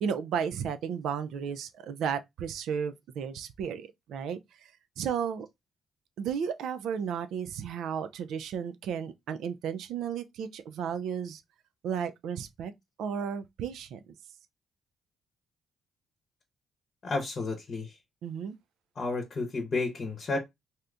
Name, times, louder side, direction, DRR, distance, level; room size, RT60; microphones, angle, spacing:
voice 1, 0.0-4.7 5.0-5.5 6.2-11.4 11.8-12.7 13.0-14.0 18.2-18.6, right 7 dB, 80° right, 0.4 m, -33 dB
voice 2, 17.0-18.0 19.0-20.4, left 3 dB, 45° left, 0.8 m, -31 dB
2.7 x 2.4 x 3.3 m
cardioid pair, 90°, 0 cm